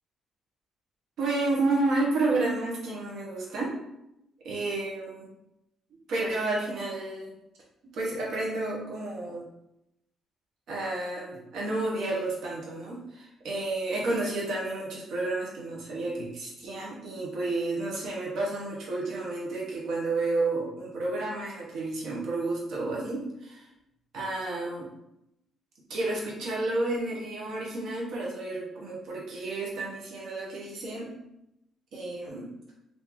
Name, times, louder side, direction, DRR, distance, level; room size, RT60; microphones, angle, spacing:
voice 1, 1.2-3.8 4.4-5.3 6.1-7.3 7.9-9.4 10.7-23.6 24.1-24.9 25.9-31.1 31.9-32.5, right 2 dB, 70° right, -4 dB, 1.0 m, -31 dB
3.1 x 2.7 x 3.7 m, 0.84 s
cardioid pair, 160°, 0 cm